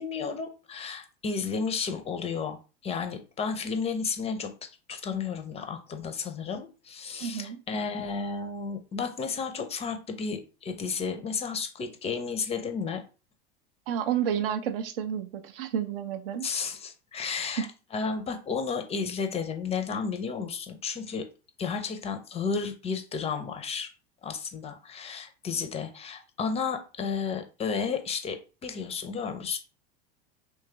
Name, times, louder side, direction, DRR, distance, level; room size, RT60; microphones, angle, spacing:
voice 1, 0.0-13.0 16.4-17.7 17.9-21.2 21.6-23.9 24.2-29.6, left 5 dB, 20° left, 0.5 m, -32 dB
voice 2, 7.2-7.6 13.9-16.5 17.6-17.7, right 8 dB, 60° right, 0.5 m, -30 dB
3.2 x 3.1 x 3.3 m
figure-of-eight pair, 75°, 32 cm